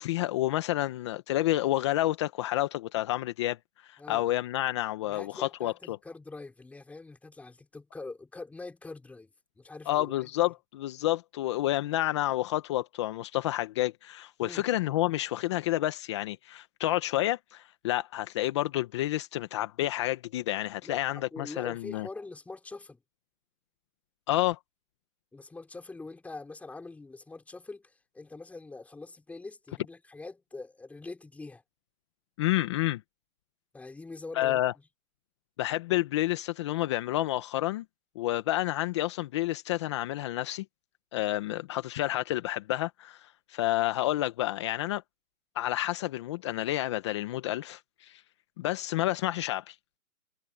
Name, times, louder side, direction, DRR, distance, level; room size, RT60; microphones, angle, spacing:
voice 1, 0.0-3.6 3.8-6.0 9.9-22.1 24.3-24.6 32.4-33.0 34.3-34.7 35.6-37.8 38.1-40.6 41.1-45.0 45.5-48.2 48.6-50.0, left 15 dB, 20° left, 1.3 m, -29 dB
voice 2, 4.0-4.3 5.1-10.3 14.4-14.6 20.8-23.0 25.3-31.6 33.7-34.8, left 3 dB, 5° left, 5.2 m, -44 dB
hypercardioid pair, 160°, 43 cm